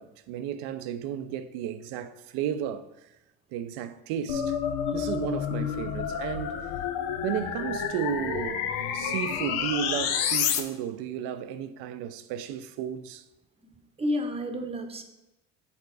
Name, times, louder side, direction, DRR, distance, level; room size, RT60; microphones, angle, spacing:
voice 1, 0.0-3.1 3.5-4.6 4.9-6.6 7.2-13.2, right 9 dB, 70° right, 0.7 m, -33 dB
sound 1, 4.3-10.6, left 8 dB, 75° left, 0.8 m, -29 dB
voice 2, 13.7-15.0, left 1 dB, 15° right, 0.9 m, -31 dB
7.1 x 3.8 x 4.7 m
supercardioid pair, 95°, 40 cm